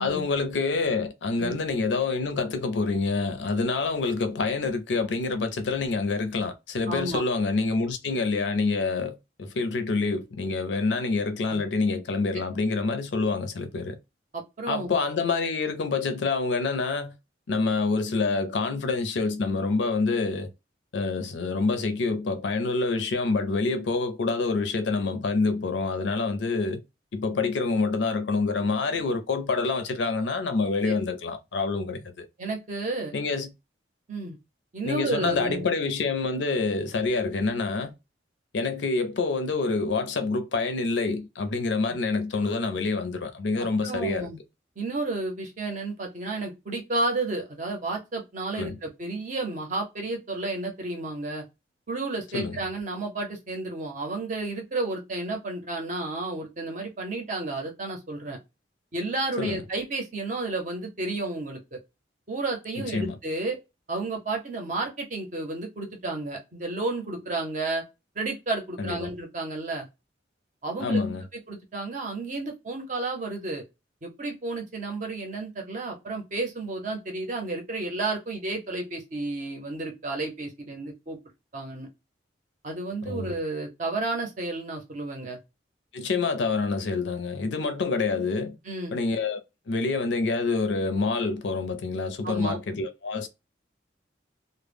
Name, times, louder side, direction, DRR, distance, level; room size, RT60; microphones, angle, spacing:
voice 1, 0.0-14.0 14.7-17.1 17.5-20.5 20.9-26.8 27.1-32.3 33.1-33.5 34.8-37.9 38.5-44.3 48.5-48.8 52.3-52.6 59.4-59.6 62.8-63.2 68.8-69.1 70.8-71.2 83.1-83.3 85.9-88.6 88.9-89.4 89.7-93.3, left 3 dB, 70° left, 0.5 m, -27 dB
voice 2, 6.9-7.2 11.4-11.6 14.3-14.9 30.8-31.0 32.4-33.1 34.1-34.4 34.7-35.7 43.8-44.4 44.8-51.4 51.9-58.4 58.9-61.8 62.3-63.6 63.9-67.8 68.2-69.9 70.6-71.0 71.3-73.6 74.0-81.2 81.5-81.9 82.6-85.4 88.6-89.0 92.2-92.6, right 2 dB, 40° right, 0.7 m, -32 dB
2.0 x 2.0 x 3.3 m
head